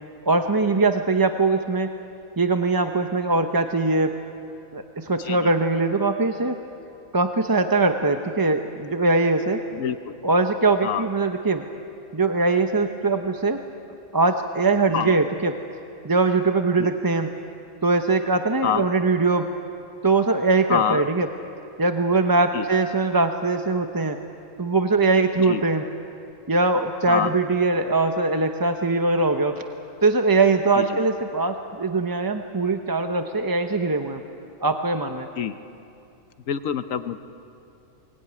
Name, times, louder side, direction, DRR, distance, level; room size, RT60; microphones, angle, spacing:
voice 1, 0.2-1.9 2.4-4.1 4.7-6.6 7.1-9.6 10.2-11.6 12.1-13.6 14.1-15.5 16.0-17.3 17.8-19.5 20.0-21.3 21.8-24.2 24.6-25.8 26.5-29.6 30.0-34.2 34.6-35.3, right 3 dB, 20° right, 6 dB, 0.6 m, -21 dB
voice 2, 9.7-10.1 10.8-11.0 14.9-15.2 16.8-16.9 18.6-18.9 20.7-21.0 22.5-22.7 25.5-25.6 27.1-27.3 30.8-31.0 35.4-35.5 36.5-37.2, left 8 dB, 75° left, 11 dB, 1.2 m, -26 dB
22.5 x 20.0 x 9.7 m, 2.7 s
omnidirectional pair, 1.4 m